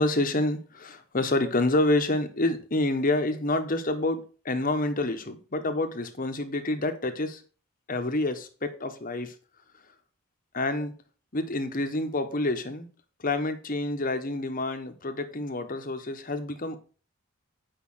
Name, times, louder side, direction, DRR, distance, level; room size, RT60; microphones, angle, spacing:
voice 1, 0.0-7.4 7.9-9.3 10.5-10.9 11.3-12.9 13.2-16.8, left 2 dB, 40° left, 1.2 m, -28 dB
8.7 x 5.6 x 5.7 m
head